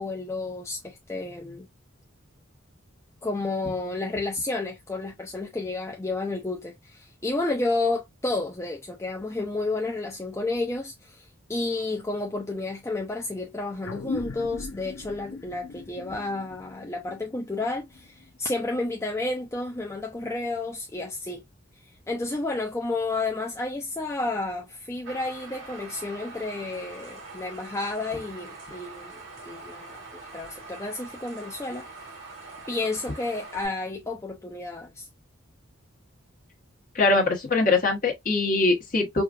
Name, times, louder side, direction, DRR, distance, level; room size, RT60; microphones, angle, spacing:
voice 1, 0.0-1.7 3.2-21.4 22.1-31.9 32.7-35.1, left 2 dB, 15° left, 0.4 m, -31 dB
sound 1, 13.8-18.7, left 4 dB, 80° left, 0.6 m, -39 dB
sound 2, 25.0-33.7, right 3 dB, 65° right, 2.8 m, -43 dB
voice 2, 36.9-39.2, left 3 dB, 40° left, 1.3 m, -22 dB
4.7 x 2.4 x 2.4 m
head